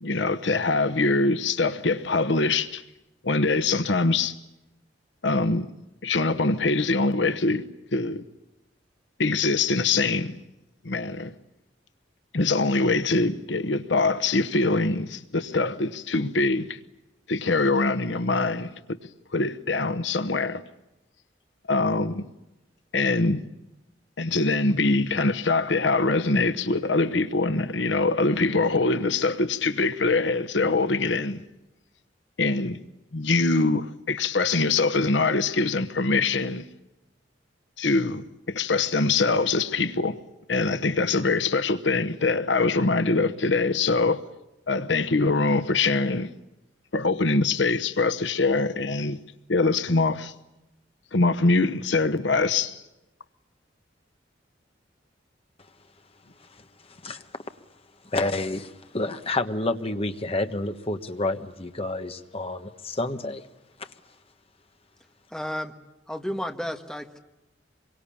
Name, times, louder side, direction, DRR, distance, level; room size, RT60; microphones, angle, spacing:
voice 1, 0.0-2.8 3.2-4.4 5.2-5.7 6.0-7.6 7.9-8.2 9.2-10.4 10.8-11.3 12.3-16.8 17.3-19.0 19.3-20.6 21.7-22.3 22.9-23.4 24.2-31.4 32.4-32.8 33.1-36.6 37.8-40.2 40.5-44.2 44.7-46.3 46.9-49.2 49.5-50.3 51.1-52.8, left 3 dB, 75° left, 1.0 m, -23 dB
voice 2, 58.0-63.4 63.8-63.9, left 2 dB, 30° left, 1.3 m, -29 dB
voice 3, 65.3-65.7 66.1-67.2, equal, 5° left, 1.5 m, -32 dB
26.0 x 23.5 x 8.6 m
head